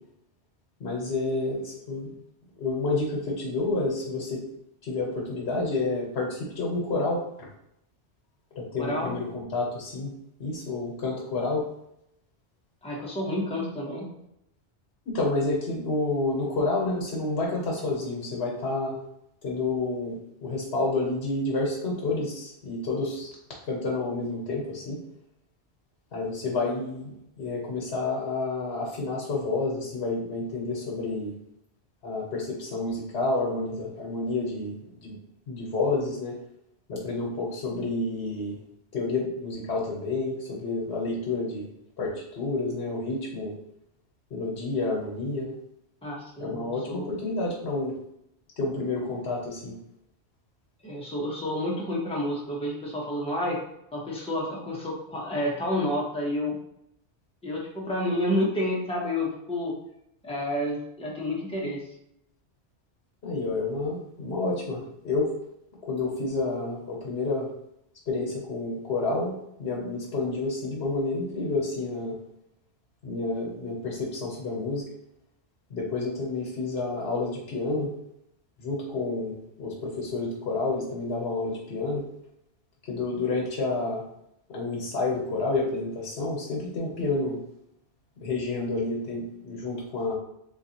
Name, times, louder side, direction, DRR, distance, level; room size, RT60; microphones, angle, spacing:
voice 1, 0.8-2.1 2.6-4.4 4.8-7.5 8.6-10.1 10.4-11.7 15.1-18.9 19.4-23.3 23.7-25.0 26.1-31.3 32.0-34.7 35.0-35.2 35.5-36.3 36.9-38.6 38.9-41.7 42.0-43.5 44.3-45.5 46.4-48.0 48.6-49.7 63.2-65.3 65.9-67.5 68.1-69.3 69.6-72.1 73.0-74.8 75.7-77.9 78.6-82.0 82.9-84.0 84.5-87.4 88.2-90.1, left 3 dB, 65° left, -2 dB, 1.1 m, -29 dB
voice 2, 8.8-9.1 12.8-14.1 46.0-47.1 50.8-53.6 53.9-56.6 57.4-59.7 60.2-61.8, left 1 dB, 5° left, -4 dB, 0.7 m, -29 dB
3.8 x 2.6 x 2.8 m, 0.78 s
omnidirectional pair, 1.2 m